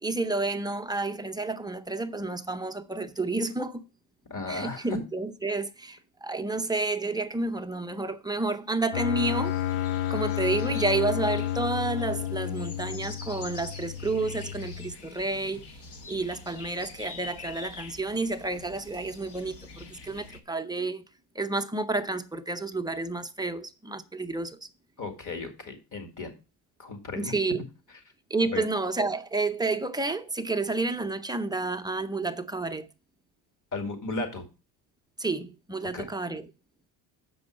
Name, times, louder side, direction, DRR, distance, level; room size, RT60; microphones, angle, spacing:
voice 1, 0.0-3.9 4.5-9.7 10.1-15.8 16.1-21.0 21.3-24.7 27.1-27.6 28.3-32.9 35.2-36.5, right 3 dB, 10° right, 0.6 m, -30 dB
voice 2, 4.3-4.9 25.0-26.3 26.8-27.3 28.5-28.6 33.7-34.4 35.9-36.0, left 3 dB, 40° left, 2.3 m, -35 dB
sound 1, 8.9-14.9, left 11 dB, 75° left, 0.7 m, -31 dB
sound 2, 9.1-20.4, left 4 dB, 55° left, 1.4 m, -46 dB
7.0 x 5.3 x 6.2 m
cardioid pair, 110°, 49 cm